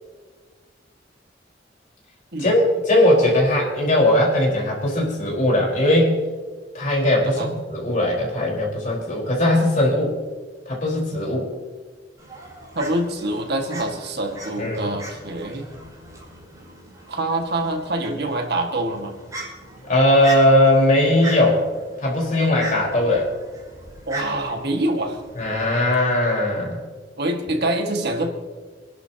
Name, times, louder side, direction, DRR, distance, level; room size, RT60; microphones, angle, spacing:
voice 1, 2.4-6.2 6.7-10.1 10.7-11.5 14.6-14.9 19.8-21.6 22.0-23.3 25.4-26.8, left 1 dB, 45° left, -2 dB, 4.3 m, -19 dB
Fowl, 12.2-25.8, right 2 dB, 20° right, 5.1 m, -39 dB
voice 2, 12.7-15.7 17.1-19.1 24.1-25.2 27.2-28.3, right 1 dB, 65° right, 3 dB, 1.8 m, -25 dB
26.5 x 11.5 x 2.9 m, 1.5 s
head